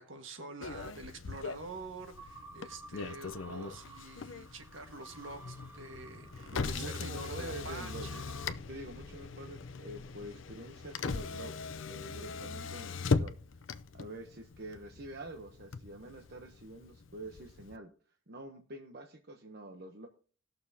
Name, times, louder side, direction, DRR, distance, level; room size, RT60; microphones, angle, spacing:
voice 1, 0.0-8.3, right 2 dB, 75° right, 5 dB, 1.6 m, -46 dB
Motor vehicle (road), 0.6-17.8, left 4 dB, 75° left, 0.6 m, -40 dB
sound 1, 2.1-8.5, right 2 dB, 10° right, 1.6 m, -54 dB
sound 2, 5.2-10.3, left 2 dB, 25° left, 1.1 m, -55 dB
voice 2, 6.5-8.2 8.7-13.4 13.9-17.9 18.3-20.1, right 1 dB, 55° right, 4 dB, 0.9 m, -46 dB
19.0 x 6.6 x 2.8 m, 0.41 s
head